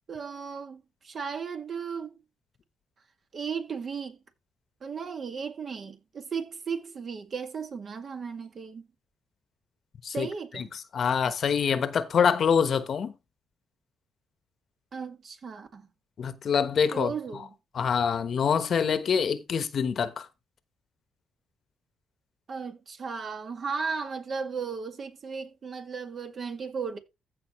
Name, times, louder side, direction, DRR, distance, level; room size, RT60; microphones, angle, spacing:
voice 1, 0.1-2.2 3.3-4.2 4.8-8.8 10.1-10.7 14.9-15.9 16.9-17.5 22.5-27.0, right 5 dB, 45° right, 2.1 m, -35 dB
voice 2, 10.9-13.1 16.2-17.1 17.7-20.3, left 7 dB, 55° left, 1.1 m, -25 dB
15.0 x 5.6 x 3.1 m
cardioid pair, 90°, 0 cm